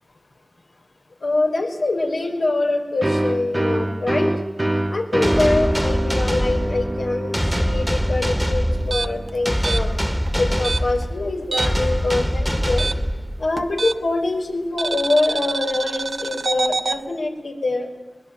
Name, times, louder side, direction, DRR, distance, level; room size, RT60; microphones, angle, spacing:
voice 1, 1.2-4.3 4.9-9.9 10.3-12.9 13.4-17.9, left 2 dB, 75° left, 1 dB, 5.0 m, -24 dB
sound 1, 3.0-10.5, right 1 dB, 25° right, 1.2 m, -26 dB
sound 2, 5.2-13.7, equal, 5° left, 2.0 m, -23 dB
sound 3, 8.8-11.9 12.2-14.2 14.8-17.0, right 3 dB, 80° right, 1.2 m, -27 dB
23.0 x 20.5 x 9.1 m, 1.2 s
wide cardioid pair, 65°, 0 cm